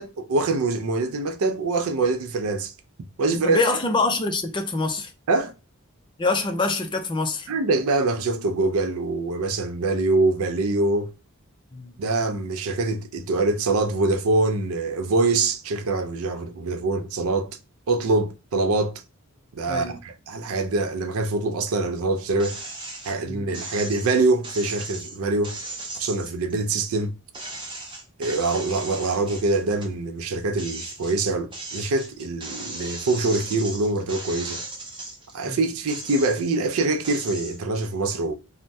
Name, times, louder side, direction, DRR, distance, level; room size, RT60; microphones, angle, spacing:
voice 1, 0.0-2.7 3.2-3.6 5.3-5.5 7.5-11.1 12.0-17.5 17.9-19.0 19.5-22.6 23.0-25.6 26.0-27.1 28.2-34.6 35.3-38.3, right 3 dB, 70° right, 0.4 m, -24 dB
voice 2, 3.3-5.1 6.2-7.5 11.7-11.9 19.7-20.0 23.2-23.4 35.5-35.6, left 3 dB, 20° left, 0.5 m, -25 dB
sound 1, 22.4-23.2 23.5-27.0 27.3-29.9 30.3-35.3 35.8-36.6 37.0-37.6, right 2 dB, 20° right, 0.7 m, -37 dB
3.3 x 2.1 x 2.6 m
head